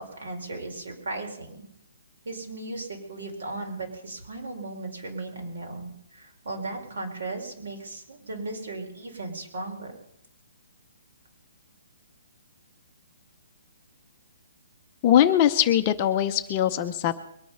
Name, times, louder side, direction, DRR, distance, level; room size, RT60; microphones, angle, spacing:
voice 1, 0.0-1.6 2.2-9.9, right 2 dB, 65° right, 2 dB, 4.5 m, -36 dB
voice 2, 15.0-17.2, left 11 dB, 20° left, 7 dB, 0.6 m, -21 dB
22.5 x 9.1 x 5.6 m, 0.75 s
hypercardioid pair, 175°, 0 cm